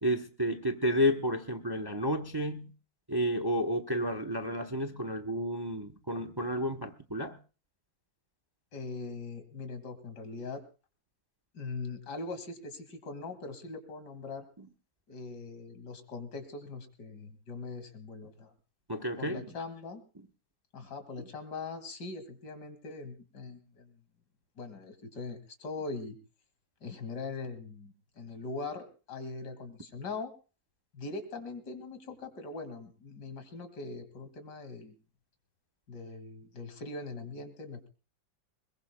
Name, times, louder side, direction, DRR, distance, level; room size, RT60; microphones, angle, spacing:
voice 1, 0.0-2.7 3.1-7.4 18.9-19.5, equal, 35° right, 5 dB, 0.3 m, -31 dB
voice 2, 8.7-10.6 11.5-14.5 15.1-18.5 19.2-20.0 20.7-24.0 24.6-26.2 26.8-30.3 30.9-35.0 35.9-37.9, left 3 dB, 60° left, 8 dB, 2.8 m, -41 dB
22.0 x 21.5 x 2.2 m, 0.35 s
omnidirectional pair, 2.0 m